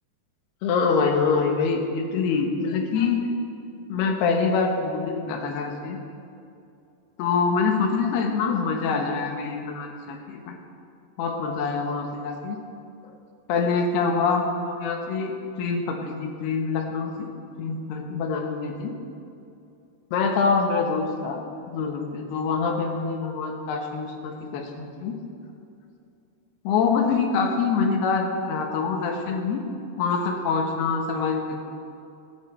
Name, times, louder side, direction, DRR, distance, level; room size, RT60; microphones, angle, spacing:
voice 1, 0.6-3.3 3.9-6.0 7.2-10.5 11.2-12.6 13.5-17.3 17.6-18.9 20.1-21.4 21.7-25.1 26.6-29.6 30.0-31.6, left 5 dB, 75° left, 3 dB, 3.2 m, -25 dB
20.0 x 9.7 x 4.4 m, 2.6 s
omnidirectional pair, 4.8 m